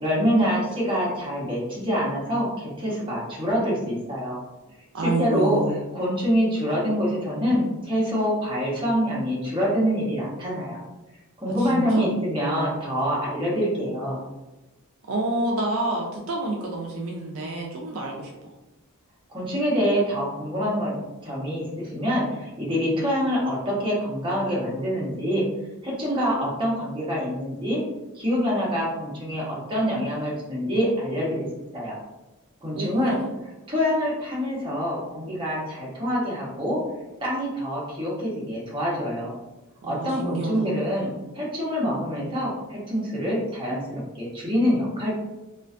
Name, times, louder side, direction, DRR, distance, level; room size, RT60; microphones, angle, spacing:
voice 1, 0.0-4.4 5.0-5.6 5.9-10.8 11.4-14.2 19.3-20.9 21.2-25.4 25.8-27.8 28.1-31.5 31.7-32.0 32.6-33.2 33.7-36.8 37.2-39.3 39.8-45.1, equal, 20° right, -6 dB, 0.7 m, -25 dB
voice 2, 4.9-5.8 11.6-12.0 15.1-18.3 32.7-33.2 39.8-40.8, right 2 dB, 65° right, 0 dB, 0.4 m, -28 dB
2.4 x 2.3 x 2.3 m, 1.1 s
head